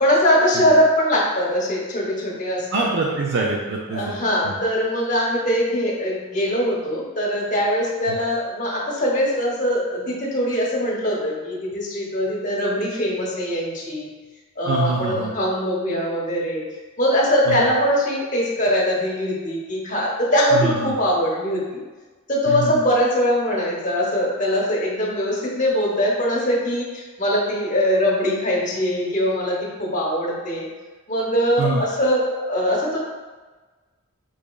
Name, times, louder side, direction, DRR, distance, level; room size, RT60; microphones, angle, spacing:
voice 1, 0.0-2.9 3.9-14.1 14.6-16.6 17.0-21.8 22.3-30.7 31.1-33.0, equal, 35° left, -4 dB, 0.9 m, -22 dB
voice 2, 2.7-4.2 8.1-8.2 14.6-15.3 17.5-17.7 20.5-20.9 22.5-22.7 31.6-31.8, right 4 dB, 50° right, -2 dB, 0.4 m, -24 dB
4.8 x 2.9 x 2.3 m, 1.3 s
head